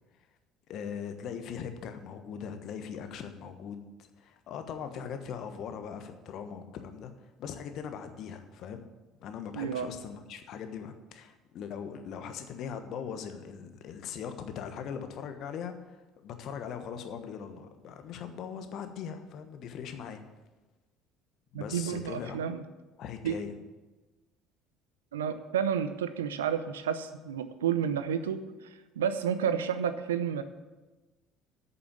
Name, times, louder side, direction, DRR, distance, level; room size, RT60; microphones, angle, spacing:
voice 1, 0.7-7.1 7.4-8.8 9.2-20.2 21.5-22.4 23.0-23.5, left 7 dB, 55° left, 7 dB, 1.2 m, -40 dB
voice 2, 9.5-9.9 21.5-22.6 23.2-23.4 25.1-28.4 29.0-30.4, right 8 dB, 80° right, 11 dB, 0.6 m, -30 dB
8.8 x 6.7 x 8.5 m, 1.2 s
hypercardioid pair, 60°, 0 cm